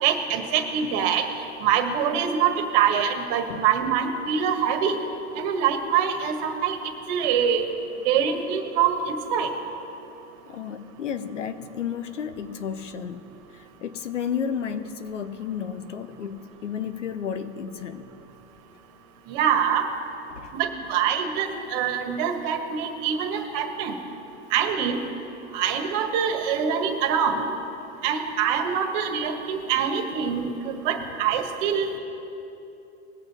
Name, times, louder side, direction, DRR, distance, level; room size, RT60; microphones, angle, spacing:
voice 1, 0.0-1.2 1.6-5.0 5.4-6.8 7.1-7.6 8.0-9.5 19.3-19.8 20.5-23.9 24.5-25.0 25.5-27.5 28.0-32.0, right 8 dB, 50° right, 5 dB, 1.5 m, -24 dB
voice 2, 10.5-13.3 13.8-18.1 20.4-20.5, left 7 dB, 90° left, 10 dB, 0.8 m, -32 dB
20.0 x 6.9 x 4.2 m, 3.0 s
hypercardioid pair, 105°, 36 cm